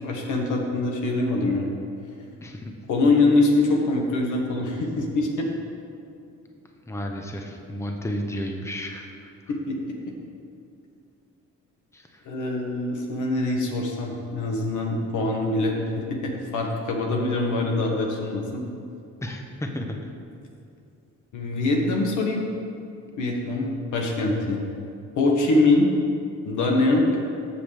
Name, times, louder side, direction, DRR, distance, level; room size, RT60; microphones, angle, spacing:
voice 1, 0.0-1.7 2.9-5.5 9.5-9.8 12.3-18.6 21.3-22.4 23.2-24.6 25.2-25.9 26.5-27.0, left 2 dB, 80° left, 0 dB, 1.7 m, -23 dB
voice 2, 2.4-2.7 6.9-9.1 11.9-12.2 19.2-20.1, equal, 10° left, 2 dB, 1.0 m, -32 dB
13.5 x 7.2 x 3.5 m, 2.5 s
cardioid pair, 90°, 30 cm